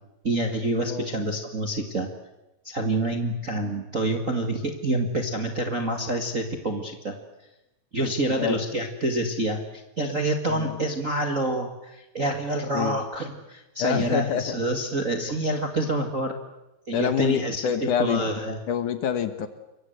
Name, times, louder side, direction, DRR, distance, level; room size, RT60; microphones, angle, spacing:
voice 1, 0.2-2.1 2.6-7.2 7.9-16.3 16.9-18.6, right 1 dB, 35° right, 5 dB, 1.3 m, -27 dB
voice 2, 13.8-14.6 16.9-18.3 18.7-19.5, left 8 dB, 65° left, 11 dB, 2.3 m, -26 dB
27.5 x 23.5 x 8.0 m, 0.94 s
omnidirectional pair, 4.6 m